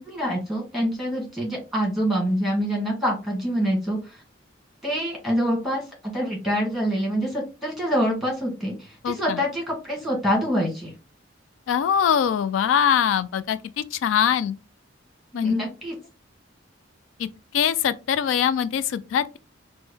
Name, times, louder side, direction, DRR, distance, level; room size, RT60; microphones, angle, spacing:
voice 1, 0.0-4.2 4.8-10.9 15.4-15.9, equal, ahead, 1.8 m, -26 dB
voice 2, 9.0-9.4 11.7-14.5 15.3-15.5 17.2-19.4, left 8 dB, 90° left, 0.3 m, -23 dB
4.4 x 2.1 x 3.4 m
head